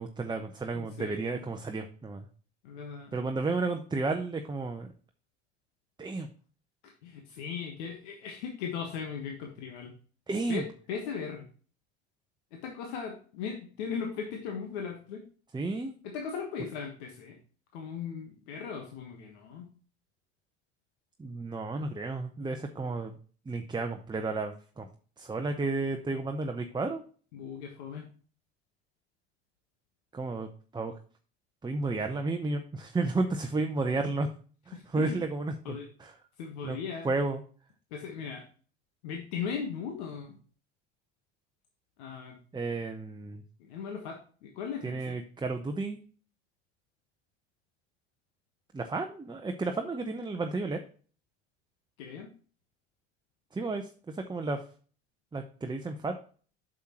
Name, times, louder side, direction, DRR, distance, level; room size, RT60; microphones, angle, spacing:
voice 1, 0.0-2.2 3.1-4.9 6.0-6.3 10.3-10.6 15.5-16.0 21.2-23.2 23.5-24.9 25.2-27.0 30.1-30.9 31.6-34.3 34.7-36.1 36.6-36.8 37.0-37.4 42.5-43.4 44.8-46.0 48.7-50.8 53.5-54.6 55.3-56.1, right 3 dB, 15° right, 5 dB, 0.8 m, -32 dB
voice 2, 0.7-1.4 2.6-3.1 7.0-9.9 10.5-10.6 10.9-11.5 12.5-15.2 16.0-17.4 17.7-19.7 27.3-28.1 34.7-35.2 35.6-35.9 36.4-37.1 37.9-38.4 39.0-40.4 42.0-42.3 43.6-45.1 52.0-52.3, left 6 dB, 75° left, 2 dB, 1.3 m, -38 dB
8.1 x 6.3 x 2.9 m, 0.41 s
hypercardioid pair, 70°, 34 cm